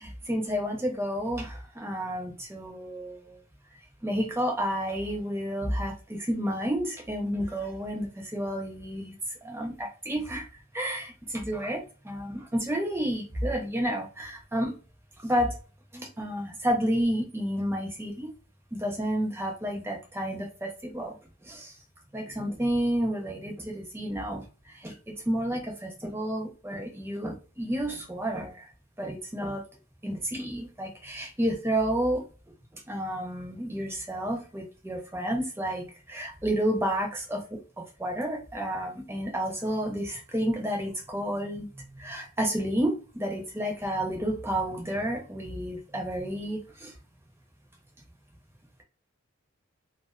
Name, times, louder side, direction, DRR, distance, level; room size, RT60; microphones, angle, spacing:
voice 1, 0.0-3.4 4.0-9.1 9.4-10.5 10.7-14.7 15.2-15.6 15.9-18.3 18.7-21.1 21.4-21.7 22.1-28.6 29.0-29.6 30.0-32.2 32.9-41.7 41.9-46.9, equal, 10° right, 1 dB, 0.5 m, -31 dB
2.4 x 2.2 x 2.3 m, 0.35 s
head